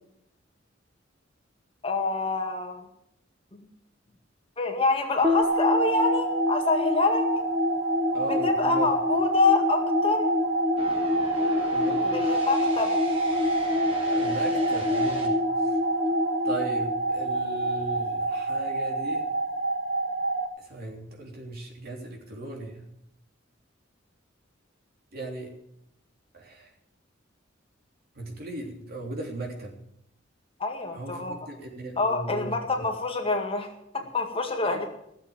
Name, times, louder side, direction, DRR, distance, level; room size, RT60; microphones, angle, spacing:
voice 1, 1.8-2.8 4.6-7.2 8.4-10.3 12.1-12.9 30.6-31.4 32.0-33.7 33.9-34.8, left 3 dB, 30° left, 3 dB, 2.0 m, -26 dB
sound 1, 5.2-17.7, left 3 dB, 10° right, 1.2 m, -29 dB
sound 2, 5.4-20.5, right 2 dB, 90° right, 2.1 m, -28 dB
voice 2, 8.1-8.9 11.7-12.2 14.1-15.4 15.6-15.8 16.4-19.3 20.6-22.8 25.1-25.5 26.3-26.7 28.1-29.7 30.9-32.9 34.6-34.9, right 2 dB, 55° right, 0 dB, 3.4 m, -37 dB
sound 3, 10.8-15.3, equal, 35° right, 4.4 m, -39 dB
16.5 x 7.5 x 8.9 m, 0.76 s
head